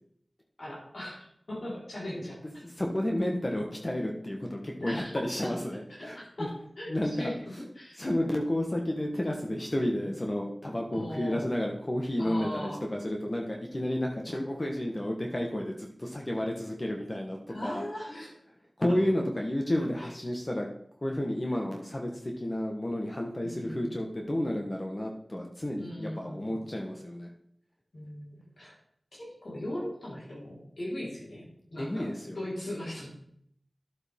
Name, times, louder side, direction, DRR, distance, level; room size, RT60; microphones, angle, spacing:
voice 1, 0.6-2.4 4.8-5.5 6.0-6.1 6.4-7.3 7.8-8.0 10.0-10.1 10.9-11.5 12.2-12.8 17.5-18.3 20.0-20.1 23.4-24.0 25.8-26.6 27.9-28.7 29.2-31.4 31.7-33.1, left 1 dB, 75° left, -7 dB, 4.5 m, -38 dB
voice 2, 2.4-6.5 6.9-7.3 8.0-17.8 18.8-20.7 21.0-27.3 31.8-32.4, left 1 dB, 35° left, 0 dB, 1.4 m, -31 dB
11.0 x 8.0 x 3.7 m, 0.68 s
wide cardioid pair, 60°, 0 cm